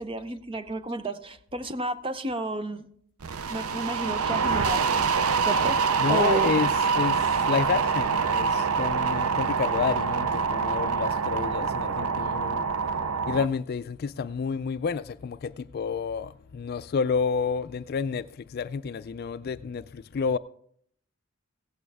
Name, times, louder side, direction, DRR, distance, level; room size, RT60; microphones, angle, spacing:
voice 1, 0.0-2.9 3.5-4.8 5.4-5.8 6.1-6.6, right 3 dB, 25° right, 0.6 m, -31 dB
sound 1, 3.2-13.5, right 5 dB, 80° right, 0.6 m, -25 dB
voice 2, 6.0-12.7 13.3-20.4, left 6 dB, 45° left, 0.3 m, -30 dB
16.0 x 8.6 x 3.4 m
head